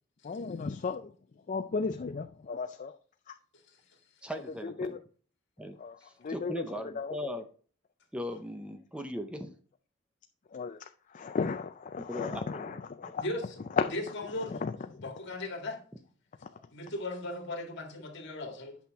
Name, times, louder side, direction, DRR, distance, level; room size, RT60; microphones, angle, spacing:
voice 1, 0.2-1.1 1.5-2.9 3.3-3.4 4.8-5.0 5.8-5.9 6.2-6.6 7.0-7.1 10.5-10.8 11.1-12.7 13.0-13.2 14.6-14.7, left 4 dB, 40° left, 0.4 m, -35 dB
voice 2, 4.2-5.0 5.6-7.5 8.1-9.5 12.1-13.1, equal, 5° right, 0.6 m, -39 dB
voice 3, 13.1-13.6 13.9-14.6 15.0-15.8 16.7-18.8, left 2 dB, 60° left, 2.0 m, -37 dB
8.4 x 5.8 x 3.5 m
head